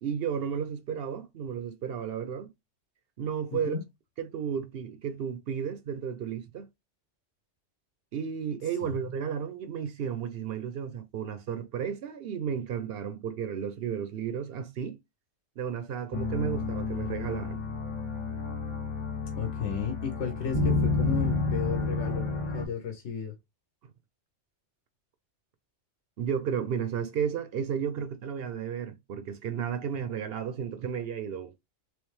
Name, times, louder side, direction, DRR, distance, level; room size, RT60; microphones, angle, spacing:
voice 1, 0.0-2.5 3.2-3.8 4.2-6.7 8.1-15.0 15.6-17.6 26.2-31.5, right 7 dB, 65° right, 0.7 m, -33 dB
voice 2, 3.5-3.8 8.8-9.0 19.4-23.4, left 7 dB, 75° left, 1.1 m, -34 dB
sound 1, 16.1-22.7, left 3 dB, 45° left, 0.9 m, -30 dB
3.2 x 3.1 x 3.1 m
omnidirectional pair, 1.2 m